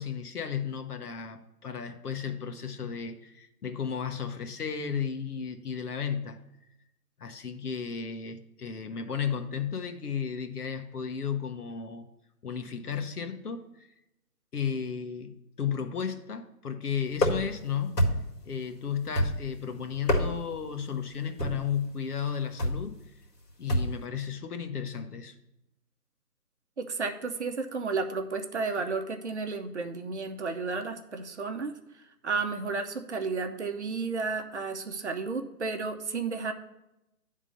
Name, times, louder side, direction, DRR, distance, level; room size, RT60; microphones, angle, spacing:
voice 1, 0.0-6.4 7.2-12.1 12.4-13.9 14.5-18.1 18.4-23.0 23.6-25.3, left 7 dB, 70° left, 7 dB, 1.1 m, -34 dB
sound 1, 17.2-17.6 18.0-18.4 19.2-19.6 19.9-20.6 21.4-21.7 22.6-22.9 23.7-24.0, equal, 90° left, 2.1 m, -27 dB
voice 2, 26.8-31.7 32.2-36.5, right 4 dB, 45° right, 6 dB, 0.8 m, -32 dB
9.8 x 3.7 x 6.5 m, 0.89 s
hypercardioid pair, 165°, 47 cm